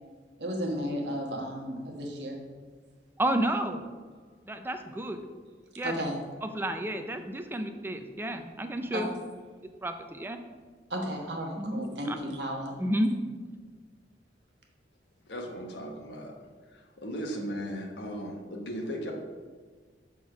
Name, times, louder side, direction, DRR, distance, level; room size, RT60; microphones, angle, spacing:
voice 1, 0.4-2.4 5.8-6.2 8.9-9.1 10.9-12.8, equal, 70° right, 0 dB, 1.2 m, -33 dB
voice 2, 3.2-3.8 4.5-5.2 5.8-5.9 6.4-9.1 9.8-10.4 11.6-12.2 12.8-13.1, right 1 dB, 10° right, 7 dB, 0.4 m, -31 dB
voice 3, 15.2-16.3 16.7-19.1, equal, 75° left, 2 dB, 1.1 m, -37 dB
6.3 x 3.7 x 6.1 m, 1.5 s
head